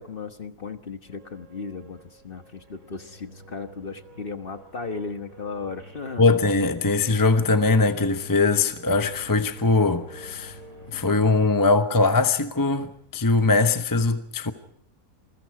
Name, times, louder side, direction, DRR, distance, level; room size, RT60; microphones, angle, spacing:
voice 1, 0.0-6.3, left 4 dB, 40° left, 1.3 m, -36 dB
sound 1, 1.1-11.2, right 1 dB, 60° right, 5.8 m, -47 dB
voice 2, 6.2-10.6 10.9-14.5, left 3 dB, 15° left, 0.9 m, -21 dB
28.0 x 21.5 x 4.8 m
omnidirectional pair, 1.6 m